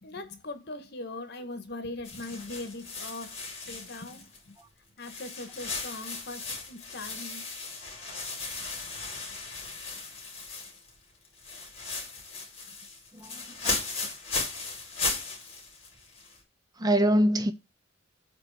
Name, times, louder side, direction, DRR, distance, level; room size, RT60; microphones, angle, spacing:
voice 1, 0.0-4.6 5.0-7.5 12.7-12.8, left 2 dB, 55° left, 1.4 m, -40 dB
sound 1, 2.0-4.6 5.0-11.0 11.2-16.4, left 4 dB, 30° left, 3.2 m, -36 dB
voice 2, 13.1-13.7 16.8-17.5, equal, 20° right, 0.5 m, -24 dB
8.3 x 3.2 x 6.5 m
head